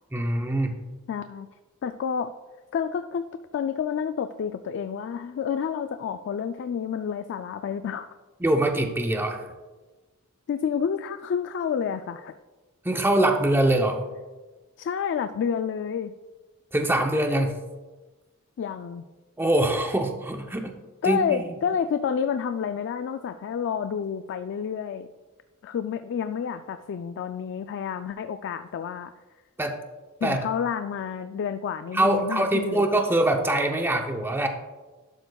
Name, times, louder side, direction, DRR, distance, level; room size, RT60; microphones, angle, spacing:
voice 1, 0.1-0.8 8.4-9.5 12.8-14.0 16.7-17.6 19.4-20.8 21.0-21.4 29.6-29.8 30.2-30.4 31.9-34.5, right 1 dB, 10° right, 4 dB, 0.6 m, -23 dB
voice 2, 1.1-1.5 1.8-2.3 2.7-8.2 10.5-12.3 14.8-16.1 18.6-19.0 21.0-25.1 25.6-29.1 30.2-32.9, left 7 dB, 55° left, 10 dB, 0.3 m, -29 dB
11.5 x 7.9 x 2.3 m, 1.2 s
head